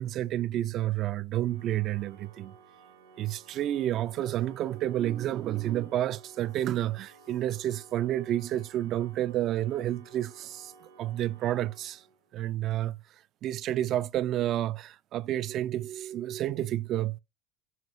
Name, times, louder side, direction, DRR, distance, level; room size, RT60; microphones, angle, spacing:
voice 1, 0.0-2.6 3.2-10.7 11.0-12.0 12.3-13.0 13.4-17.2, right 13 dB, 50° right, 0.3 m, -30 dB
Organ, 1.5-12.4, right 4 dB, 85° right, 2.1 m, -55 dB
10.5 x 5.3 x 2.6 m
hypercardioid pair, 75°, 0 cm